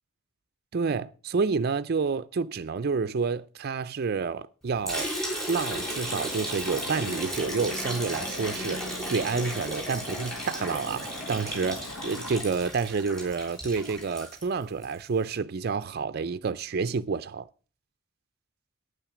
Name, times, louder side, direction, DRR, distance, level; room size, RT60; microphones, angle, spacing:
voice 1, 0.7-5.1 5.5-17.5, right 5 dB, 50° right, 0.4 m, -29 dB
Liquid, 4.9-15.0, equal, ahead, 3.5 m, -35 dB
sound 1, 5.7-12.4, left 2 dB, 65° left, 1.2 m, -41 dB
9.4 x 8.9 x 6.1 m
head